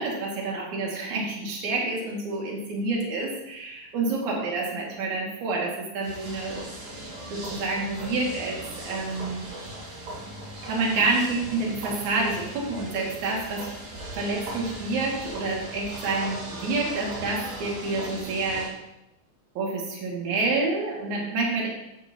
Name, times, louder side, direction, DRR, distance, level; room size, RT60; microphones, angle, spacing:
voice 1, 0.0-6.7 7.3-9.4 10.6-13.7 14.2-18.7 19.5-21.7, right 3 dB, 60° right, -2 dB, 3.3 m, -28 dB
sound 1, 6.0-18.7, right 1 dB, 80° right, 5.1 m, -38 dB
14.0 x 8.1 x 2.8 m, 0.90 s
omnidirectional pair, 4.0 m